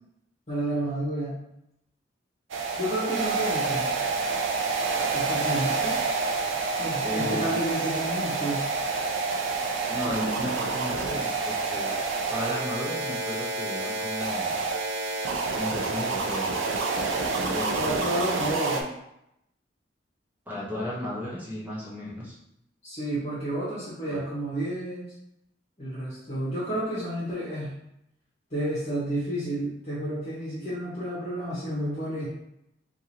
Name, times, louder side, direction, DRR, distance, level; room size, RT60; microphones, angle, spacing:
voice 1, 0.5-1.4 2.8-3.9 5.1-5.8 6.8-8.7 17.7-18.9 22.8-25.1 25.8-27.7 28.5-32.3, right 1 dB, 40° left, -11 dB, 1.3 m, -31 dB
sound 1, 2.5-18.8, right 3 dB, 85° right, 0.5 m, -28 dB
voice 2, 5.5-6.0 7.0-7.6 9.9-11.9 12.3-14.7 15.6-16.5 17.5-18.4 20.5-22.4 24.0-24.2, left 1 dB, 10° right, -7 dB, 0.9 m, -35 dB
4.7 x 2.7 x 3.0 m, 0.82 s
head